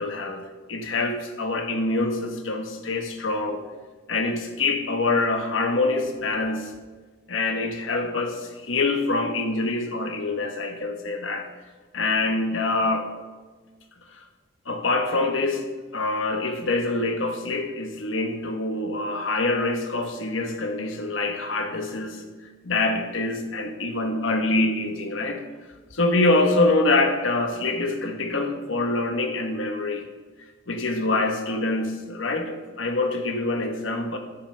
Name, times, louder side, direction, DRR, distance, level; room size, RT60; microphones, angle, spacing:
voice 1, 0.0-3.6 4.1-6.7 7.3-11.5 11.9-13.1 14.1-14.2 14.7-15.6 15.9-22.2 22.6-25.4 25.9-30.0 30.7-34.2, left 2 dB, 75° left, 5 dB, 1.1 m, -25 dB
15.5 x 6.8 x 3.3 m, 1.3 s
head